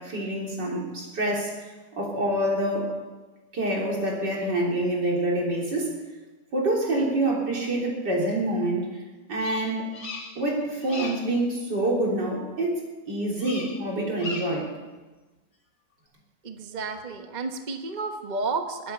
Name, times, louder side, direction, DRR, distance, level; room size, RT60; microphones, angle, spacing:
voice 1, 0.0-1.7 2.0-3.0 3.5-5.9 6.5-9.0 9.3-9.9 10.4-14.7, right 1 dB, 80° right, -2 dB, 4.1 m, -26 dB
Bird vocalization bird call bird song, 9.3-10.5 10.8-11.3 13.4-13.8 14.1-14.7, left 3 dB, 70° left, 2.9 m, -38 dB
voice 2, 16.4-18.9, right 3 dB, 30° right, 5 dB, 1.1 m, -31 dB
21.5 x 9.3 x 6.9 m, 1.2 s
omnidirectional pair, 1.8 m